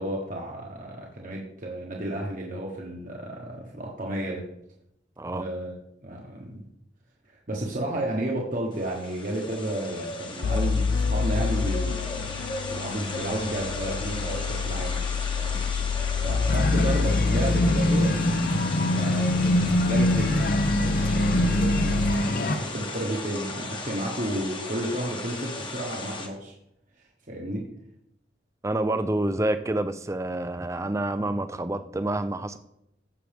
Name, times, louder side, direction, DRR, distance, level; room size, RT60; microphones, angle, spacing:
voice 1, 0.0-4.4 5.2-5.7 6.0-6.6 7.3-12.4 12.7-15.0 15.4-15.6 16.2-18.2 19.0-20.4 20.8-26.5 27.3-27.7, right 1 dB, 45° right, -1 dB, 1.3 m, -32 dB
sound 1, 8.7-26.3, left 3 dB, 25° left, 1.2 m, -36 dB
sound 2, 10.4-22.1, left 5 dB, 85° left, 0.4 m, -28 dB
sound 3, 16.5-22.6, left 1 dB, 50° left, 0.7 m, -24 dB
voice 2, 28.6-32.6, right 1 dB, 15° right, 10 dB, 0.5 m, -28 dB
15.5 x 6.2 x 3.5 m, 0.78 s
head